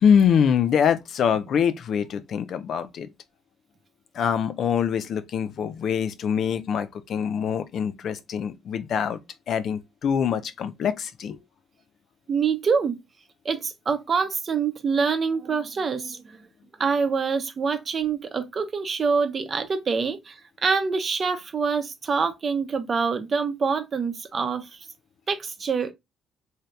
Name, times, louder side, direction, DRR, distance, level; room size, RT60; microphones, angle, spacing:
voice 1, 0.0-3.1 4.1-9.2 9.5-11.4, left 7 dB, 60° left, 0.5 m, -24 dB
voice 2, 12.3-13.0 13.4-16.4 16.8-24.8 25.3-25.9, right 5 dB, 40° right, 0.7 m, -25 dB
3.2 x 2.8 x 2.3 m
cardioid pair, 85°, 0 cm